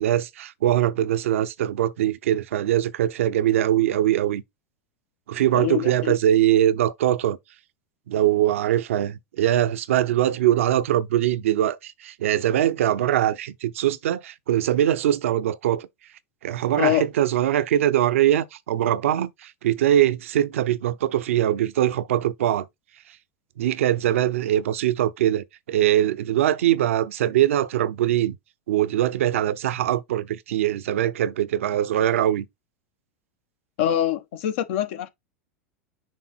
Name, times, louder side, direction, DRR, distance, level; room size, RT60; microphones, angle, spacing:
voice 1, 0.0-4.4 5.3-7.4 8.1-15.9 16.4-22.7 23.6-28.4 28.7-32.5, right 12 dB, 75° right, 0.6 m, -22 dB
voice 2, 5.5-6.1 16.8-17.0 33.8-35.1, left 12 dB, 65° left, 1.0 m, -24 dB
6.3 x 3.4 x 4.4 m
hypercardioid pair, 95°, 7 cm